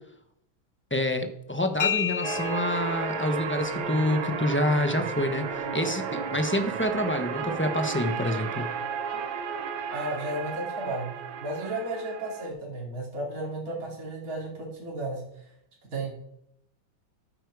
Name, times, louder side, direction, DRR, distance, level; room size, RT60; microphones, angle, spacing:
voice 1, 0.9-8.7, left 1 dB, 10° left, 6 dB, 0.6 m, -27 dB
sound 1, 1.8-9.3, left 7 dB, 50° left, 1.4 m, -36 dB
sound 2, 2.2-12.5, right 6 dB, 80° right, 1.9 m, -33 dB
voice 2, 9.9-11.1 11.4-15.2 15.9-16.1, right 1 dB, 45° right, -3 dB, 3.3 m, -33 dB
13.0 x 8.8 x 4.8 m, 0.76 s
omnidirectional pair, 2.1 m